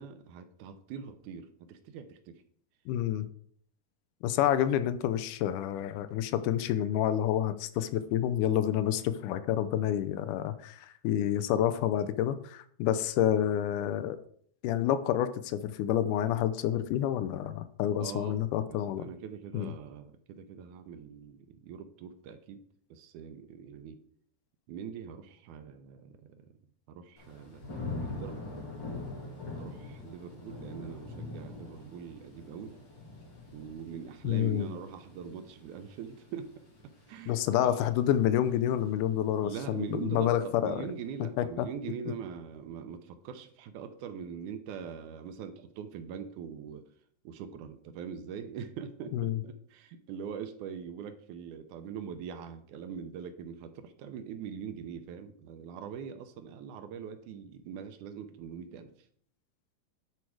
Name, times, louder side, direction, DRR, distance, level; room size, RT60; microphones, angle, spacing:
voice 1, 0.0-2.4 18.0-22.6 22.9-24.0 24.7-26.5 26.9-28.4 29.6-32.8 33.5-36.7 37.1-37.7 39.4-46.8 47.3-58.9, right 7 dB, 75° right, 9 dB, 2.0 m, -42 dB
voice 2, 2.9-3.3 4.2-14.2 14.6-19.0 19.5-19.7 34.2-34.7 37.3-40.8 41.4-41.7 49.1-49.4, left 11 dB, 80° left, 12 dB, 2.1 m, -28 dB
Thunder / Rain, 27.2-38.1 38.5-39.0, left 2 dB, 35° left, 2.7 m, -43 dB
10.5 x 4.6 x 4.7 m, 0.62 s
omnidirectional pair, 3.7 m